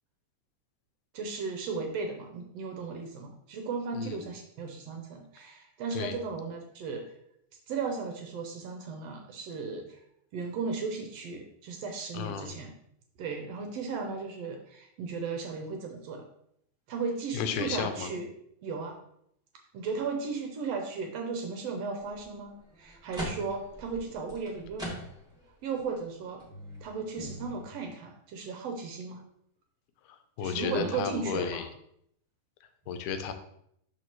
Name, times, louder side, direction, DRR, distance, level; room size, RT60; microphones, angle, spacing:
voice 1, 1.1-7.1 7.7-10.0 10.3-12.7 13.2-16.2 16.9-18.3 18.6-19.0 19.7-25.0 25.6-26.4 26.8-29.2 30.4-31.7, right 4 dB, 75° right, 3 dB, 1.6 m, -35 dB
voice 2, 3.9-4.3 5.9-6.1 12.1-12.6 17.3-18.1 30.4-31.6 32.9-33.3, left 7 dB, 85° left, 9 dB, 2.1 m, -33 dB
sound 1, 22.1-22.2 22.7-25.5 25.9-26.0 26.4-27.6, equal, 5° right, 0.8 m, -41 dB
6.1 x 5.9 x 3.0 m, 0.72 s
omnidirectional pair, 3.5 m